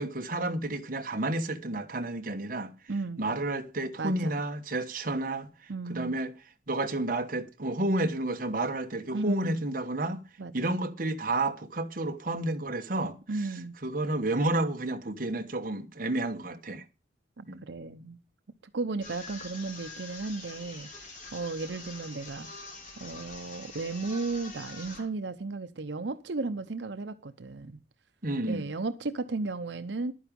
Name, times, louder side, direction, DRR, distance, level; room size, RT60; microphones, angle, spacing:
voice 1, 0.0-2.7 3.2-6.3 6.7-10.2 10.5-13.2 13.8-16.8 17.5-17.6 28.2-28.6, right 2 dB, 50° right, 1.2 m, -31 dB
voice 2, 2.9-3.3 4.0-4.4 5.7-6.2 9.1-9.6 10.4-10.8 13.3-13.7 17.4-18.2 18.7-20.9 21.3-22.5 23.0-27.8 28.4-30.1, right 3 dB, 85° right, 0.7 m, -34 dB
sound 1, 19.0-25.0, left 3 dB, 50° left, 3.9 m, -45 dB
11.0 x 9.7 x 5.2 m
head